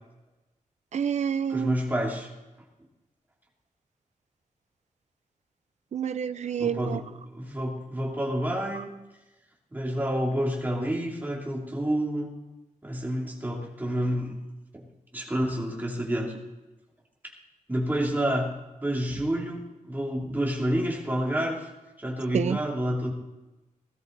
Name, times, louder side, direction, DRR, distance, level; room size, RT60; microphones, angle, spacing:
voice 1, 0.9-1.8 5.9-7.0 8.7-8.8 22.3-22.6, right 7 dB, 55° right, 0.5 m, -28 dB
voice 2, 1.5-2.3 6.6-7.1 7.3-8.9 9.7-12.3 12.8-14.3 14.7-14.8 15.1-16.3 17.7-18.5 18.8-19.6 19.9-21.7 22.0-23.1, equal, 15° right, 2.8 m, -28 dB
17.5 x 13.0 x 4.0 m
wide cardioid pair, 170°, 14 cm